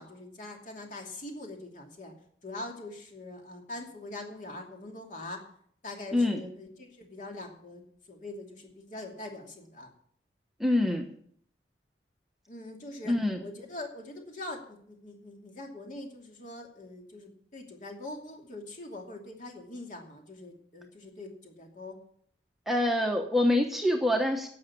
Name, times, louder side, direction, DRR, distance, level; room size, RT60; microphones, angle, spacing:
voice 1, 0.0-2.1 2.4-5.4 5.8-9.9 12.5-13.1 13.4-22.0, left 2 dB, 45° left, 2 dB, 2.7 m, -43 dB
voice 2, 10.6-11.1 13.1-13.4 22.7-24.5, left 1 dB, ahead, 2 dB, 1.1 m, -25 dB
11.5 x 7.9 x 8.5 m, 0.63 s
head